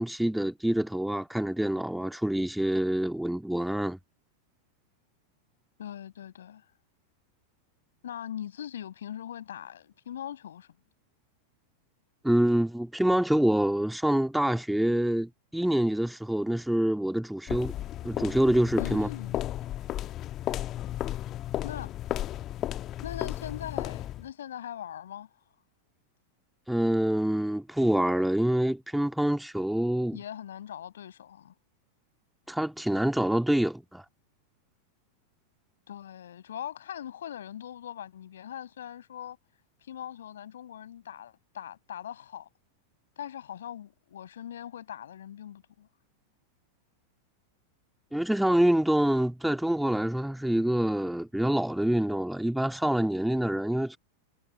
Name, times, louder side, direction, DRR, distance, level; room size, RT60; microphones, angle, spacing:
voice 1, 0.0-4.0 12.2-17.7 18.0-19.1 26.7-30.2 32.5-34.0 48.1-54.0, right 1 dB, ahead, 1.9 m, -26 dB
voice 2, 5.8-6.6 8.0-10.8 18.8-19.4 21.6-21.9 23.0-25.3 30.1-31.5 35.9-39.4 39.8-42.5 43.2-45.9, left 10 dB, 65° left, 5.8 m, -41 dB
sound 1, 17.5-24.3, left 13 dB, 30° left, 1.2 m, -34 dB
figure-of-eight pair, 90°, 0 cm